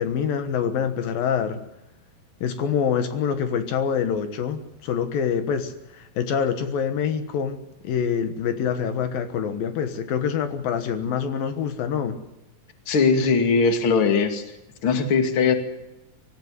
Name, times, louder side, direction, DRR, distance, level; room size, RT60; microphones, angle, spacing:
voice 1, 0.0-1.6 2.4-7.6 7.8-12.2, left 7 dB, 75° left, 9 dB, 3.1 m, -25 dB
voice 2, 12.9-14.4 14.8-15.5, left 5 dB, 40° left, 7 dB, 2.8 m, -20 dB
25.5 x 15.5 x 9.7 m, 0.91 s
omnidirectional pair, 4.2 m